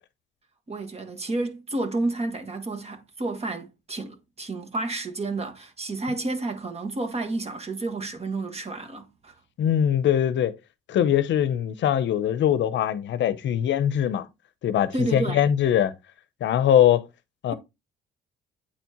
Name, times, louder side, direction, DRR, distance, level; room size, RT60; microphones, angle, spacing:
voice 1, 0.7-9.3 14.9-15.4, right 2 dB, 30° right, 1.5 m, -30 dB
voice 2, 9.6-10.5 10.9-14.3 14.6-15.9 16.4-17.1 17.4-17.5, left 10 dB, 70° left, 0.7 m, -22 dB
8.8 x 4.5 x 2.9 m
cardioid pair, 90°, 20 cm